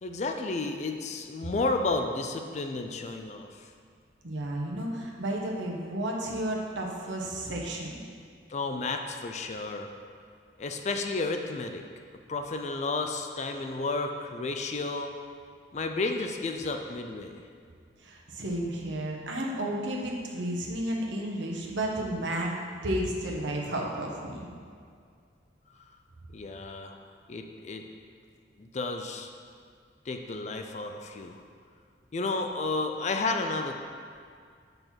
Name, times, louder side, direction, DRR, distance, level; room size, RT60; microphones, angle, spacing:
voice 1, 0.0-3.5 8.5-9.9 10.6-11.8 12.3-15.1 15.7-17.4 26.3-26.9 27.3-27.8 28.6-29.3 30.1-31.4 32.1-33.8, left 3 dB, 40° left, 5 dB, 0.4 m, -32 dB
voice 2, 4.2-8.0 18.0-22.5 22.8-24.5, right 1 dB, 85° right, -1 dB, 1.0 m, -32 dB
5.4 x 4.6 x 5.8 m, 2.2 s
head